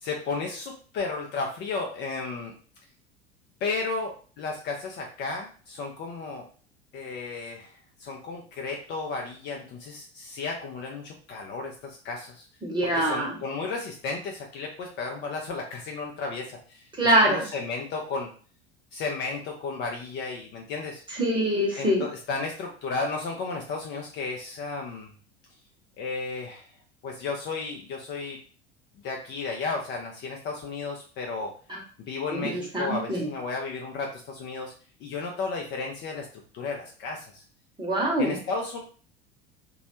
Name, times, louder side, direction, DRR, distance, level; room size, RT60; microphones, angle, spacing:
voice 1, 0.0-2.5 3.6-6.5 6.9-7.7 8.0-12.4 12.8-16.9 17.2-18.3 18.9-21.0 21.8-25.1 26.0-26.7 27.0-28.4 29.0-31.5 32.1-34.7 35.0-36.3 36.5-37.4 38.2-38.8, left 4 dB, 35° left, 1 dB, 0.5 m, -33 dB
voice 2, 12.6-13.3 17.0-17.4 21.1-22.0 31.7-31.8 32.3-33.3 37.8-38.4, right 1 dB, 15° right, -2 dB, 0.9 m, -24 dB
2.2 x 2.0 x 2.9 m, 0.41 s
figure-of-eight pair, 75°, 32 cm